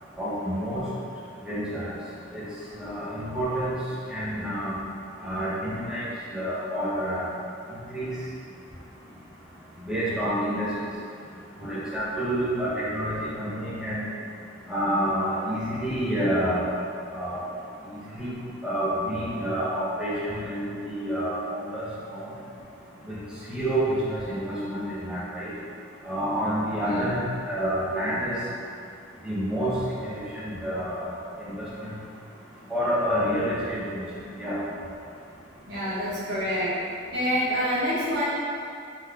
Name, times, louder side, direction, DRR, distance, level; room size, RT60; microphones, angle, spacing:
voice 1, 0.2-0.8 1.4-2.0 2.3-2.4 2.8-3.8 4.1-4.7 5.2-7.3 7.7-8.1 9.8-10.7 11.6-14.0 14.7-16.7 17.1-17.4 17.9-18.3 18.6-21.9 22.1-22.3 23.1-23.2 23.5-25.5 26.0-27.2 27.5-28.3 29.2-29.7 30.0-31.9 32.7-34.0 34.4-34.6, equal, 5° right, -10 dB, 0.9 m, -28 dB
voice 2, 26.8-27.1 35.7-36.7 37.1-38.2, equal, 65° right, -10 dB, 1.4 m, -27 dB
3.8 x 3.1 x 3.6 m, 2.4 s
head